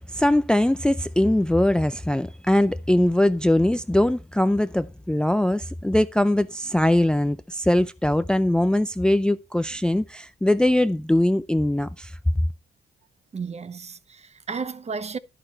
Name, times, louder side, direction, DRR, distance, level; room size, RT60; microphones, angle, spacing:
voice 1, 0.1-12.1, left 1 dB, 5° left, 0.5 m, -21 dB
voice 2, 13.3-15.2, right 5 dB, 35° right, 0.9 m, -33 dB
11.0 x 9.7 x 3.1 m
cardioid pair, 90°, 20 cm